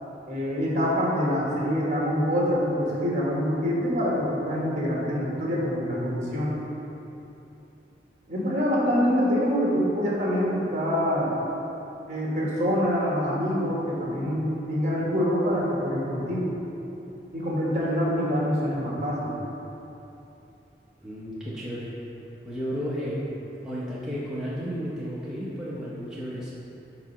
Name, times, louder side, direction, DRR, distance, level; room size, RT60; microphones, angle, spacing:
voice 1, 0.3-6.6 8.3-11.4 12.1-16.5 17.3-19.4, equal, 40° right, -5 dB, 1.3 m, -25 dB
voice 2, 21.0-21.9 22.4-23.2 23.6-26.5, equal, 5° right, -9 dB, 0.7 m, -33 dB
4.9 x 4.0 x 5.8 m, 3.0 s
head